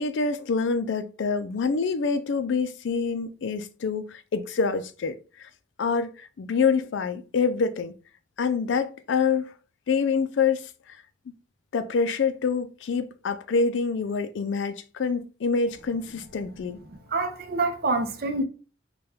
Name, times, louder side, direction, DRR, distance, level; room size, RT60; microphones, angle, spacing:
voice 1, 0.0-5.5 5.8-7.9 8.4-9.5 9.9-11.0 11.7-16.8, left 5 dB, 70° left, 0.4 m, -26 dB
voice 2, 16.9-18.4, right 3 dB, 50° right, 0.6 m, -27 dB
4.2 x 2.2 x 3.3 m
head